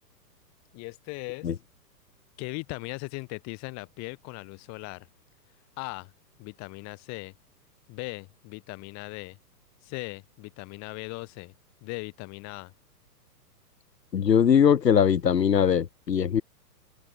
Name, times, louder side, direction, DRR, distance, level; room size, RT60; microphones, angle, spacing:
voice 1, 0.7-1.5 2.4-5.1 5.8-6.1 6.4-7.3 7.9-9.4 9.8-11.5 11.8-12.7, left 27 dB, 35° left, 5.4 m, -38 dB
voice 2, 14.1-16.4, left 8 dB, 90° left, 1.7 m, -21 dB
open air
hypercardioid pair, 130°, 48 cm